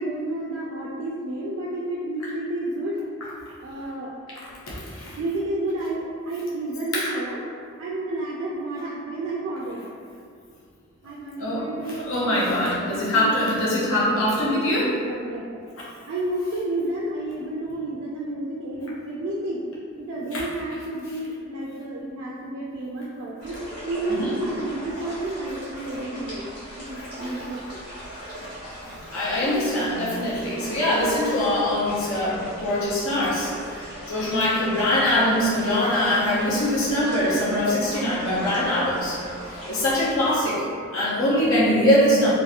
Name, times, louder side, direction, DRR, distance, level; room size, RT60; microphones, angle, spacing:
voice 1, 0.0-3.0 3.6-4.1 5.2-7.4 7.8-9.9 11.0-15.6 16.1-19.6 20.0-23.6 23.9-26.5 26.8-27.8, right 1 dB, 80° right, -4 dB, 0.3 m, -31 dB
voice 2, 4.7-5.2 7.0-7.1 11.4-14.9 20.3-20.4 24.1-24.4 27.0-27.1 29.1-33.5 34.1-39.2 39.7-40.6 40.9-42.3, left 1 dB, 80° left, -7 dB, 0.6 m, -23 dB
sound 1, 23.4-40.4, equal, 50° left, 1.1 m, -39 dB
2.8 x 2.5 x 2.3 m, 2.2 s
head